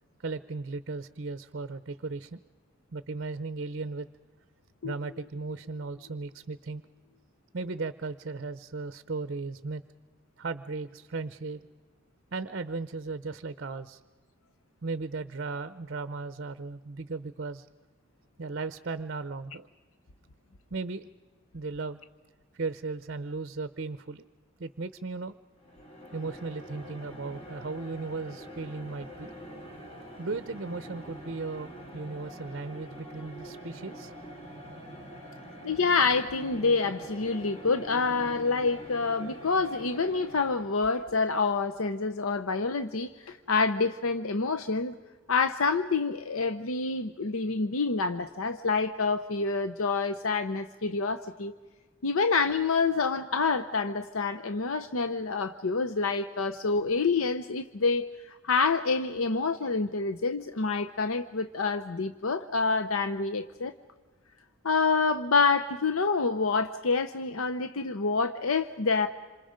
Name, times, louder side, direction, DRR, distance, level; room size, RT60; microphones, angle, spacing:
voice 1, 0.2-2.4 2.9-4.1 4.8-6.8 7.5-9.8 10.4-11.6 12.3-14.0 14.8-17.7 18.4-19.7 20.7-21.1 21.5-22.0 22.5-24.3 24.6-25.3 26.1-29.3 30.2-34.1, right 3 dB, 50° right, 13 dB, 0.6 m, -36 dB
sound 1, 4.8-8.2, left 8 dB, 50° left, 0.9 m, -49 dB
sound 2, 25.6-40.9, equal, 30° left, 2.9 m, -45 dB
voice 2, 35.6-44.9 45.3-51.5 52.0-63.7 64.6-69.1, left 4 dB, 80° left, 10 dB, 0.7 m, -27 dB
28.0 x 26.5 x 5.1 m, 1.4 s
head